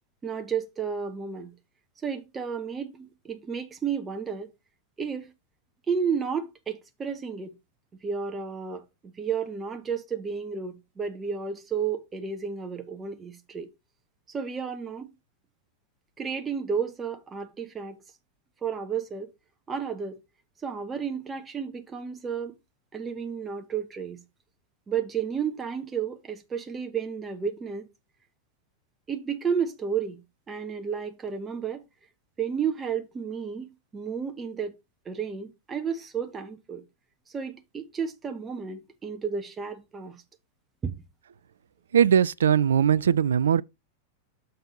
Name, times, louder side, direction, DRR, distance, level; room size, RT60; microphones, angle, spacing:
voice 1, 0.2-1.5 2.0-4.5 5.0-5.3 5.9-7.5 8.0-13.7 14.3-15.1 16.2-18.0 18.6-19.3 19.7-20.2 20.6-22.5 22.9-24.2 24.9-27.9 29.1-31.8 32.4-34.7 35.0-36.8 37.3-40.2 40.8-40.9, right 6 dB, 20° right, 1.1 m, -32 dB
voice 2, 41.9-43.6, right 8 dB, 65° right, 0.3 m, -20 dB
6.8 x 3.9 x 5.1 m
figure-of-eight pair, 90°, 0 cm